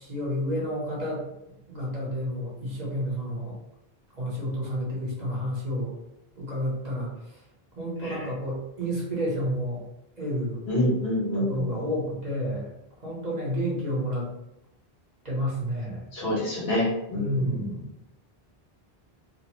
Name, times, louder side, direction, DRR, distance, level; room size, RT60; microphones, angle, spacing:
voice 1, 0.0-3.6 4.1-5.9 6.4-7.1 7.7-9.8 10.2-10.6 11.3-12.7 13.0-14.3 15.2-16.0 17.1-17.9, equal, 45° right, -5 dB, 0.9 m, -30 dB
voice 2, 10.7-11.7 16.1-17.6, left 1 dB, 75° left, -6 dB, 1.3 m, -27 dB
2.8 x 2.0 x 3.0 m, 0.83 s
omnidirectional pair, 1.0 m